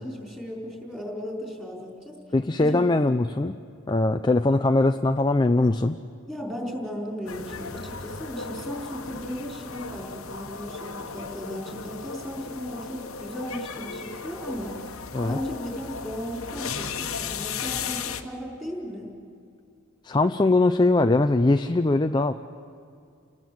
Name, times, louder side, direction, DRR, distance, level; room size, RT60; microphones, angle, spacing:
voice 1, 0.0-2.2 2.6-2.8 6.3-14.8 15.2-19.1, equal, 5° right, -1 dB, 4.5 m, -36 dB
voice 2, 2.3-3.6 3.9-6.0 15.1-15.4 20.0-22.3, left 2 dB, 20° left, 8 dB, 0.5 m, -21 dB
sound 1, 7.3-18.2, left 5 dB, 65° left, 1.2 m, -36 dB
30.0 x 18.5 x 7.8 m, 2.4 s
head